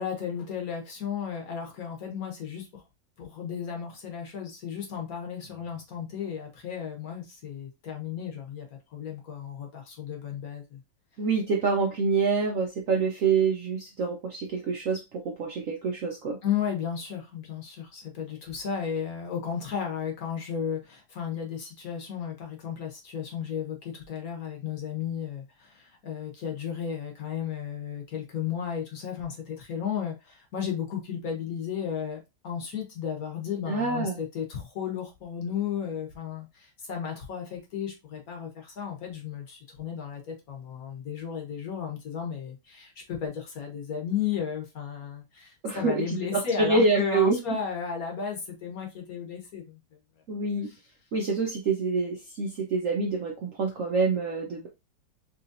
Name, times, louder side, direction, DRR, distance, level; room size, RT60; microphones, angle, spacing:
voice 1, 0.0-2.8 3.2-10.8 16.4-49.8 50.6-50.8, left 7 dB, 55° left, 1.3 m, -34 dB
voice 2, 11.2-16.4 33.7-34.2 45.6-47.4 50.3-50.7 51.1-54.7, right 4 dB, 65° right, 0.8 m, -26 dB
3.8 x 3.0 x 2.6 m
omnidirectional pair, 2.0 m